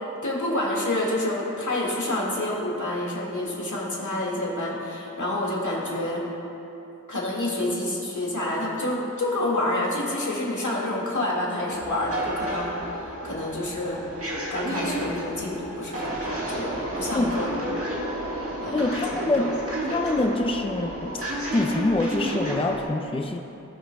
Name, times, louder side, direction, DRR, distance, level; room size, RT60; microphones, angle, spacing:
voice 1, 0.2-6.2 7.1-14.0 14.5-17.5 18.6-19.2, left 1 dB, 75° left, -4 dB, 2.0 m, -28 dB
sound 1, 11.7-22.8, right 1 dB, 50° right, 1.6 m, -31 dB
voice 2, 18.7-19.5 19.9-21.2 21.5-23.4, left 2 dB, 20° left, 3 dB, 0.5 m, -25 dB
19.0 x 6.4 x 2.3 m, 2.9 s
wide cardioid pair, 50°, 30 cm